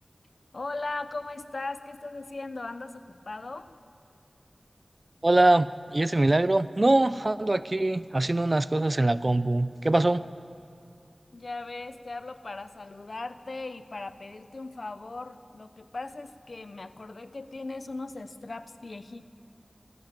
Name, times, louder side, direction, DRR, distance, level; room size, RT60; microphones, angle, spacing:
voice 1, 0.5-3.8 11.3-19.2, left 3 dB, 70° left, 12 dB, 0.8 m, -38 dB
voice 2, 5.2-10.2, right 2 dB, 45° right, 15 dB, 0.5 m, -23 dB
19.5 x 15.0 x 9.1 m, 2.5 s
wide cardioid pair, 45°, 0 cm